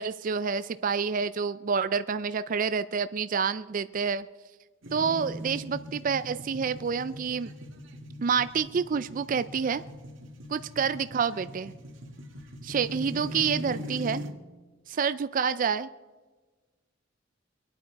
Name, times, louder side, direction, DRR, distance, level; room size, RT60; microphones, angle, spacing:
voice 1, 0.0-4.3 4.9-7.5 8.2-9.8 10.5-11.7 12.6-14.2 14.9-15.9, right 6 dB, 45° right, 13 dB, 0.4 m, -28 dB
sound 1, 4.8-14.3, equal, 75° right, 2.3 m, -40 dB
25.0 x 9.4 x 4.7 m, 1.3 s
head